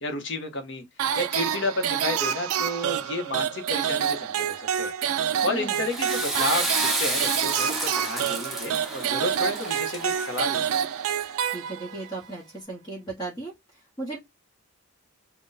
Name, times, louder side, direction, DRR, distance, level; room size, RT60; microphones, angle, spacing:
voice 1, 0.0-0.8 1.2-4.9 5.4-6.7 7.0-10.7, left 2 dB, 55° left, 0.8 m, -31 dB
sound 1, 1.0-12.1, right 9 dB, 75° right, 0.3 m, -28 dB
voice 2, 5.4-5.8 11.4-13.5 14.0-14.2, right 2 dB, 20° left, 0.9 m, -36 dB
Water / Toilet flush, 5.7-10.9, right 2 dB, ahead, 0.6 m, -31 dB
2.6 x 2.1 x 3.8 m
head